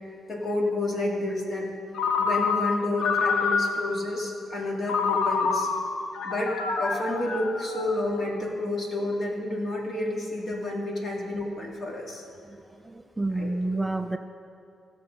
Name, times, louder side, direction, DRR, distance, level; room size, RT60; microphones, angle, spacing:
voice 1, 0.3-1.7 2.2-5.7 6.2-12.2 13.3-13.9, left 1 dB, 45° left, -1 dB, 2.1 m, -30 dB
Ringtone, 1.9-4.0 4.9-8.2, left 5 dB, 80° left, 0.8 m, -27 dB
voice 2, 12.4-14.2, right 2 dB, 10° right, 8 dB, 0.3 m, -30 dB
16.0 x 6.8 x 5.3 m, 2.6 s
cardioid pair, 140°, 0 cm